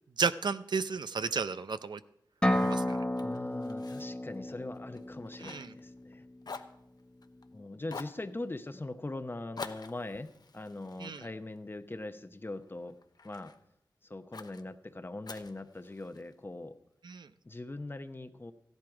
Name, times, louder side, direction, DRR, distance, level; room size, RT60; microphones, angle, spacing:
voice 1, 0.2-2.0 2.6-2.8 5.4-5.7 11.0-11.3 17.0-17.3, right 5 dB, 75° right, 12 dB, 0.5 m, -33 dB
Fire, 2.4-6.2 6.4-7.5 7.9-8.2 9.6-12.0 12.5-13.6 14.3-14.6 15.2-16.3, left 4 dB, 60° left, 0.8 m, -48 dB
sound 1, 2.4-6.2, left 1 dB, 15° left, 1.2 m, -32 dB
voice 2, 3.2-6.2 7.5-13.0 13.2-13.5 14.0-16.8 17.4-18.5, left 2 dB, 30° left, 10 dB, 0.8 m, -41 dB
15.0 x 11.0 x 4.9 m, 0.81 s
wide cardioid pair, 90°, 8 cm